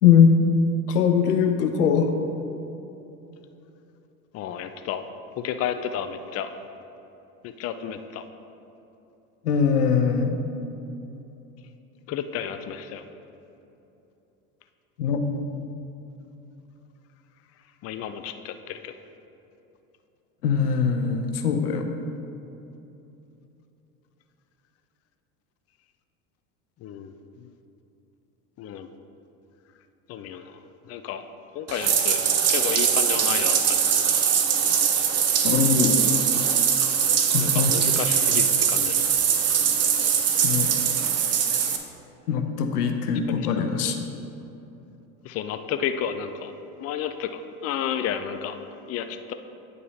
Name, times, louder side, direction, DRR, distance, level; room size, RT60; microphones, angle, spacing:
voice 1, 0.0-0.3 0.9-2.1 9.4-10.4 15.0-15.2 20.4-21.9 35.4-36.1 37.3-37.7 40.4-40.7 42.3-44.1, left 7 dB, 85° left, 6 dB, 0.8 m, -21 dB
voice 2, 4.3-5.0 5.4-6.5 7.6-8.2 12.1-13.0 17.8-18.9 26.8-27.1 27.4-27.5 28.6-28.9 30.1-30.6 30.9-31.2 31.5-32.2 32.5-33.8 37.4-39.0 43.3-43.4 45.2-46.5 46.8-48.6 48.9-49.3, left 8 dB, 35° left, 9 dB, 0.5 m, -31 dB
Bathtub (filling or washing), 31.7-41.8, right 7 dB, 35° right, 0.8 m, -22 dB
9.4 x 5.5 x 4.1 m, 2.9 s
hypercardioid pair, 80°, 45 cm